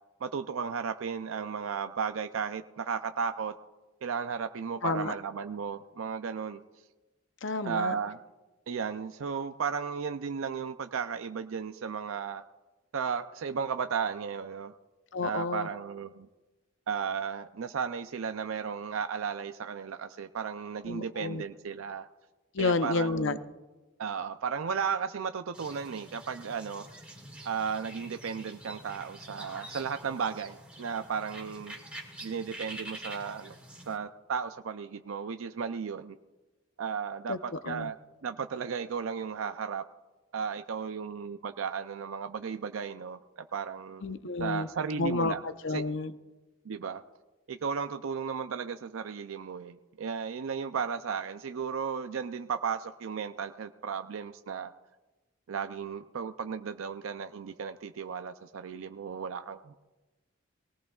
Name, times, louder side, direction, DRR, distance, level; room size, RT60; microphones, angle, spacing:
voice 1, 0.2-3.6 4.0-6.6 7.6-8.2 8.7-12.4 12.9-14.7 15.2-16.3 16.9-22.1 22.6-23.4 24.0-26.9 27.4-31.7 32.2-33.6 33.9-36.2 36.8-38.0 38.2-39.9 40.3-44.0 44.4-45.4 45.7-45.8 46.6-47.0 47.5-54.7 55.5-59.8, right 6 dB, 80° right, 9 dB, 0.5 m, -34 dB
voice 2, 4.8-5.1 7.4-7.9 15.1-15.7 20.8-21.4 22.5-23.4 37.3-37.9 44.0-44.7 45.0-46.1, left 3 dB, 60° left, 11 dB, 0.7 m, -31 dB
sound 1, 25.5-34.0, right 1 dB, 5° right, 1.9 m, -46 dB
20.0 x 18.0 x 2.4 m, 1.2 s
head